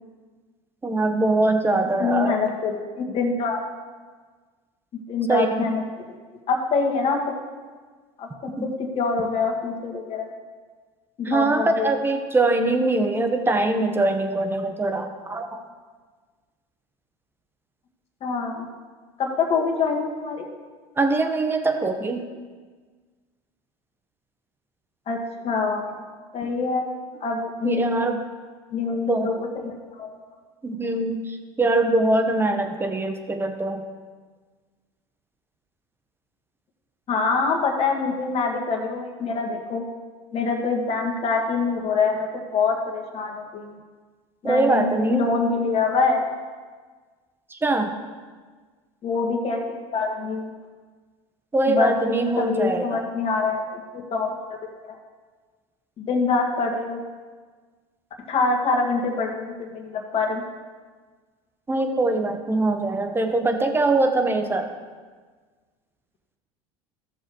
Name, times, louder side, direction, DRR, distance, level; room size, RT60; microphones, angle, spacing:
voice 1, 0.8-2.4 5.3-5.6 8.6-8.7 11.2-15.5 21.0-22.2 27.6-28.2 29.1-29.3 30.6-33.8 44.4-45.3 47.5-47.9 51.5-53.0 61.7-64.7, right 2 dB, 15° right, 5 dB, 1.1 m, -22 dB
voice 2, 2.0-3.6 4.9-5.8 6.5-7.2 8.2-8.7 9.0-10.3 11.2-11.9 18.2-18.6 19.2-20.5 25.1-25.2 25.4-26.0 26.3-26.9 27.2-28.0 28.7-30.1 37.1-39.8 40.3-43.8 44.4-46.3 49.0-50.5 51.7-51.9 52.4-53.8 54.1-54.4 54.8-55.0 56.0-57.0 58.3-60.4, left 4 dB, 45° left, 2 dB, 1.8 m, -25 dB
14.5 x 6.7 x 3.1 m, 1.5 s
hypercardioid pair, 85°, 15 cm